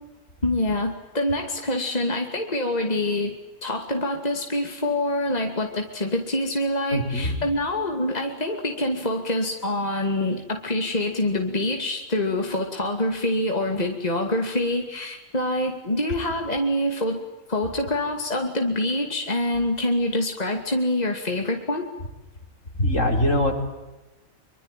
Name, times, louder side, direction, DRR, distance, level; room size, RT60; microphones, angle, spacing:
voice 1, 0.4-17.2 17.5-21.9, left 1 dB, 30° left, 3 dB, 2.7 m, -25 dB
voice 2, 6.9-7.3 22.8-23.6, left 1 dB, 70° left, 4 dB, 4.5 m, -22 dB
25.0 x 25.0 x 9.2 m, 1.1 s
omnidirectional pair, 1.3 m